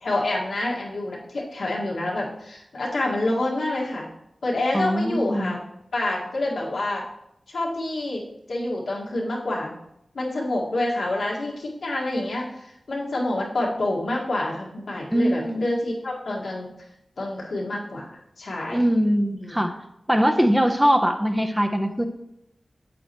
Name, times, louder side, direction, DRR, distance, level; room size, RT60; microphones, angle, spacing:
voice 1, 0.0-4.1 4.4-5.6 5.9-7.0 7.5-8.2 8.5-9.7 10.1-16.7 17.2-18.8 19.3-19.5, left 2 dB, 85° left, -3 dB, 1.8 m, -27 dB
voice 2, 4.7-5.5 15.1-15.7 18.7-19.7 20.1-22.1, equal, 5° right, 6 dB, 0.7 m, -21 dB
8.5 x 8.0 x 3.0 m, 0.81 s
wide cardioid pair, 65°, 0 cm